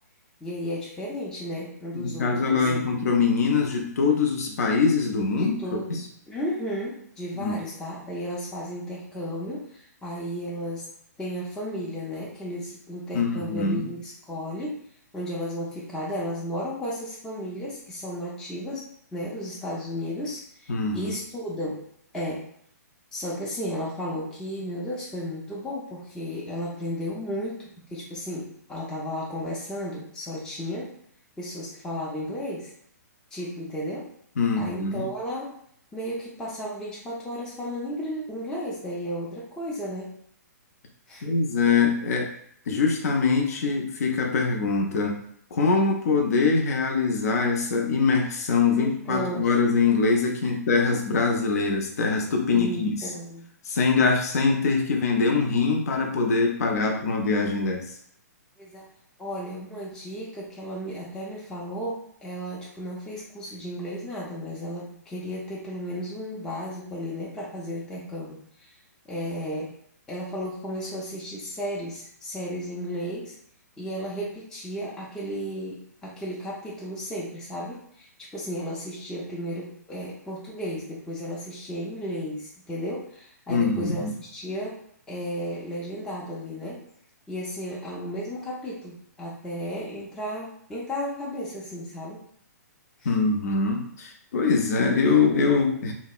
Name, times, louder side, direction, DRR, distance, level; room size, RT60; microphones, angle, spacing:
voice 1, 0.4-2.9 5.4-5.9 6.3-10.9 11.2-14.8 15.1-21.9 22.1-22.5 23.1-31.0 31.4-32.7 33.3-34.1 34.6-35.6 35.9-40.1 41.1-41.3 48.7-49.5 50.4-50.5 52.5-53.5 58.6-58.9 59.2-68.7 69.1-69.8 70.1-73.3 73.8-84.8 85.1-86.8 87.3-92.2 93.0-93.1, equal, 5° left, -6 dB, 0.4 m, -34 dB
voice 2, 1.9-5.5 5.9-6.1 7.4-7.6 13.1-13.8 20.7-21.1 34.4-35.0 41.2-42.3 42.7-45.2 45.5-53.0 53.7-57.8 83.5-84.1 93.0-95.9, left 4 dB, 60° left, 2 dB, 0.5 m, -23 dB
2.7 x 2.0 x 2.3 m, 0.65 s
hypercardioid pair, 130°, 9 cm